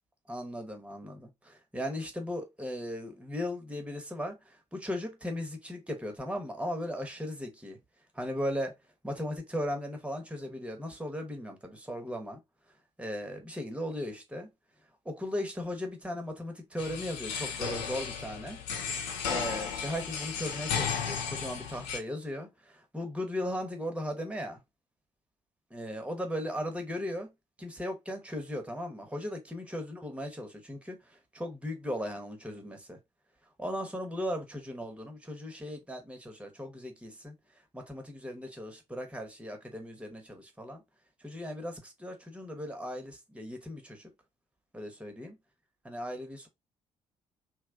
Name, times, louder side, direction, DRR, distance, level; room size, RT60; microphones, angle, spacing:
voice 1, 0.3-7.8 8.1-8.7 9.0-12.4 13.0-14.5 15.0-18.6 19.3-24.6 25.7-27.3 27.6-33.0 33.6-37.3 37.7-40.8 41.2-44.1 44.7-45.4 45.8-46.5, equal, 5° right, 1.1 m, -37 dB
sound 1, 16.8-22.0, left 7 dB, 70° left, 0.6 m, -34 dB
3.0 x 2.3 x 3.7 m
figure-of-eight pair, 45°, 16 cm